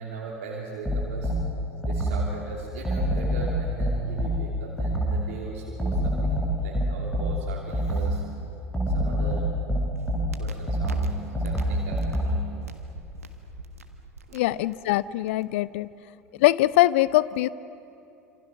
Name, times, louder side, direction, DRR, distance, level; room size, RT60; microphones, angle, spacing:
voice 1, 0.0-1.4 1.8-8.2 8.8-9.6 10.1-12.5 14.3-14.5 15.3-15.4, right 4 dB, 60° right, -3 dB, 3.0 m, -39 dB
sound 1, 0.8-2.4 2.8-5.3 5.8-8.3 8.7-12.5, equal, 10° left, 5.9 m, -26 dB
sound 2, 9.9-15.4, right 4 dB, 80° right, 1.5 m, -43 dB
voice 2, 14.3-15.9 16.4-17.5, left 17 dB, 60° left, 18 dB, 0.6 m, -22 dB
27.0 x 27.0 x 6.1 m, 2.6 s
figure-of-eight pair, 75°, 8 cm